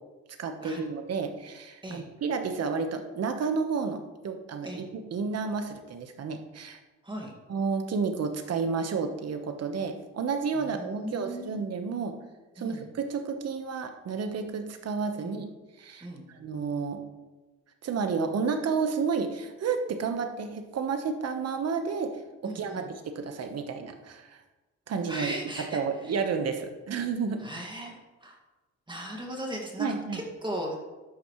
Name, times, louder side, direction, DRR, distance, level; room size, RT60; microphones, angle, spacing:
voice 1, 0.4-6.8 7.5-12.1 12.6-15.5 15.8-16.1 16.3-17.0 17.8-24.4 24.9-27.4 29.8-30.2, right 5 dB, 55° right, 6 dB, 1.4 m, -31 dB
voice 2, 10.5-11.6 12.6-12.8 15.2-15.3 16.0-16.3 22.4-22.9 25.1-26.2 27.4-28.4 28.9-29.9 30.1-30.8, right 1 dB, 15° right, 0 dB, 2.2 m, -38 dB
12.5 x 9.4 x 3.3 m, 1.2 s
cardioid pair, 90°, 30 cm